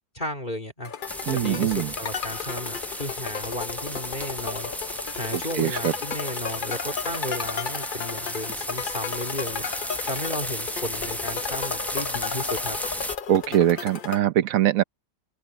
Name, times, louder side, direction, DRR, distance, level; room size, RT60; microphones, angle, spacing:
voice 1, 0.1-0.9 1.3-4.7 5.2-9.7 10.1-12.8, left 1 dB, 30° left, 2.6 m, -34 dB
sound 1, 0.8-14.2, left 6 dB, 45° left, 0.6 m, -34 dB
sound 2, 1.1-13.2, equal, ahead, 0.4 m, -34 dB
voice 2, 1.3-1.9 5.3-5.9 13.3-14.8, right 12 dB, 60° right, 1.1 m, -22 dB
open air
omnidirectional pair, 1.8 m